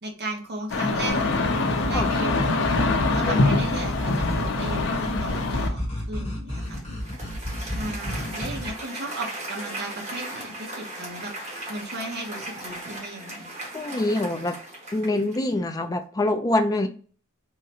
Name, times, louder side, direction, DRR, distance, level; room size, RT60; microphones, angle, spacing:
voice 1, 0.0-2.3 3.1-6.8 7.6-11.3 11.7-13.5, right 1 dB, 50° right, 1 dB, 0.8 m, -35 dB
sound 1, 0.7-5.7, left 3 dB, 60° left, 0.6 m, -24 dB
sound 2, 1.1-8.7, left 1 dB, 35° left, 1.0 m, -31 dB
Applause, 6.7-15.6, right 1 dB, 35° right, 1.3 m, -37 dB
voice 2, 13.7-14.6 14.9-16.9, left 1 dB, 20° left, 7 dB, 0.4 m, -25 dB
3.6 x 2.1 x 2.7 m, 0.41 s
head